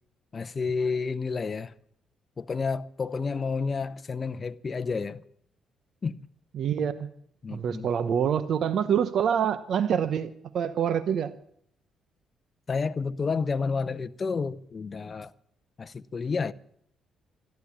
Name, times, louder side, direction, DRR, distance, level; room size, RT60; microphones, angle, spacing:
voice 1, 0.3-1.7 2.4-5.2 6.0-6.2 7.4-7.9 12.7-15.3 15.8-16.5, left 4 dB, 35° left, 0.7 m, -30 dB
voice 2, 6.5-7.1 7.5-11.3, right 8 dB, 65° right, 0.9 m, -26 dB
14.0 x 11.5 x 8.5 m
cardioid pair, 90°, 0 cm